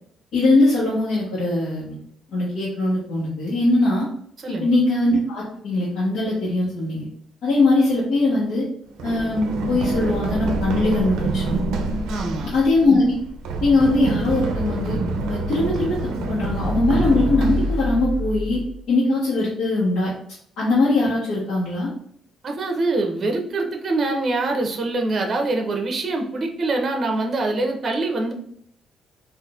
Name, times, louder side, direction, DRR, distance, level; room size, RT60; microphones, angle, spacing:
voice 1, 0.3-2.0 2.3-4.1 4.5-7.1 7.4-8.7 9.0-11.6 12.4-13.1 13.6-15.0 15.3-18.6 18.9-20.1 20.6-21.9, left 2 dB, 80° left, -8 dB, 1.1 m, -21 dB
Run, 9.0-18.7, right 2 dB, 90° right, 0.4 m, -26 dB
voice 2, 12.1-12.5 22.4-28.3, right 2 dB, 45° right, 3 dB, 0.7 m, -24 dB
3.9 x 2.5 x 2.4 m, 0.66 s
cardioid pair, 90°, 0 cm